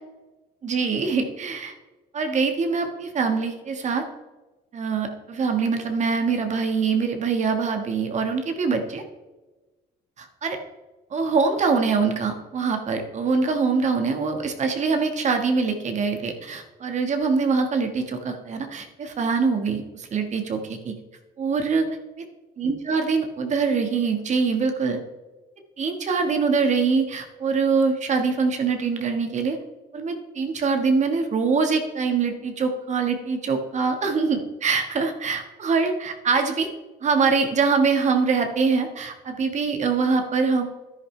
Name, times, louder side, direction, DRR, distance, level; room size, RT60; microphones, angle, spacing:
voice 1, 0.6-1.7 2.1-4.0 4.7-9.0 10.2-10.6 11.1-20.9 21.4-21.9 22.2-22.3 22.6-25.0 25.8-29.6 29.9-36.7 37.0-40.7, right 5 dB, 45° right, 5 dB, 1.6 m, -24 dB
10.5 x 10.0 x 3.3 m, 1.1 s
cardioid pair, 110°, 17 cm